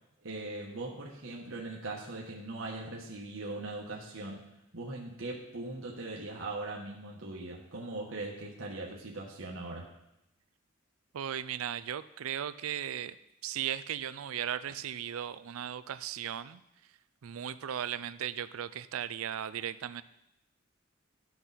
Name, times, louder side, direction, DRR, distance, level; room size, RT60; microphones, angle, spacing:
voice 1, 0.2-4.5 4.7-9.9, right 2 dB, 70° right, -2 dB, 1.2 m, -40 dB
voice 2, 11.1-13.2 13.4-16.6 17.2-20.0, right 10 dB, 90° right, 16 dB, 0.4 m, -36 dB
12.5 x 6.2 x 4.1 m, 0.87 s
head